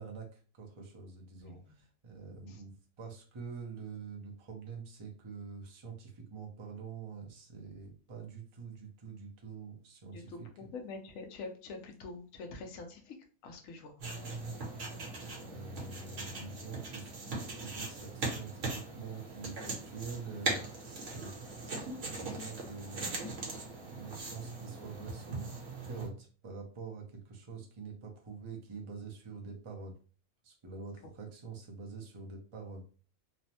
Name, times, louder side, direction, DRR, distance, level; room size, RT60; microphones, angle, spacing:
voice 1, 0.0-10.7 15.4-23.1 23.8-25.5 25.7-30.0 30.4-32.9, right 5 dB, 40° right, 0 dB, 0.4 m, -46 dB
voice 2, 1.4-1.8 2.5-2.6 10.1-13.2 13.4-13.9 31.0-31.1, left 3 dB, 70° left, 4 dB, 1.0 m, -45 dB
sound 1, 14.0-26.1, right 3 dB, 65° right, 1.1 m, -40 dB
3.1 x 2.0 x 2.7 m, 0.38 s
omnidirectional pair, 1.5 m